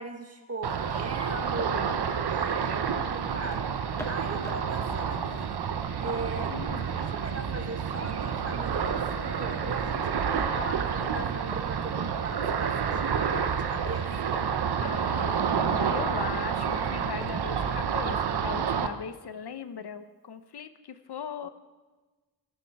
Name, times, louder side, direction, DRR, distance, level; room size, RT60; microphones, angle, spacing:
voice 1, 0.0-1.8 2.5-3.7 4.0-5.6 6.0-6.5 6.9-14.1, right 3 dB, 40° right, 4 dB, 1.9 m, -38 dB
Ocean, 0.6-18.9, right 7 dB, 85° right, 0.9 m, -29 dB
voice 2, 1.7-2.3 6.5-7.0 10.3-10.5 14.8-21.5, left 7 dB, 85° left, 11 dB, 0.9 m, -39 dB
sound 1, 3.3-18.8, left 1 dB, 5° left, 1.5 m, -48 dB
15.5 x 14.5 x 4.7 m, 1.3 s
wide cardioid pair, 90°, 38 cm